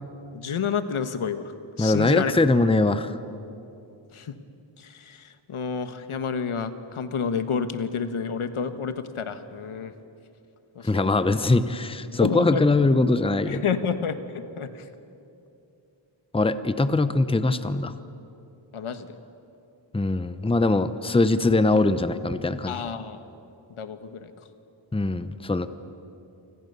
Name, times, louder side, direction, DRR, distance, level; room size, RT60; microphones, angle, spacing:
voice 1, 0.3-2.3 4.1-4.3 4.8-9.9 10.7-11.1 12.2-12.6 13.5-14.9 18.7-19.1 22.7-23.2 23.8-24.5, left 6 dB, 85° left, 10 dB, 1.5 m, -30 dB
voice 2, 1.8-3.2 10.8-13.6 16.3-17.9 19.9-22.7 24.9-25.7, left 2 dB, 10° left, 12 dB, 0.8 m, -22 dB
28.0 x 25.0 x 6.9 m, 2.7 s
wide cardioid pair, 130°, 49 cm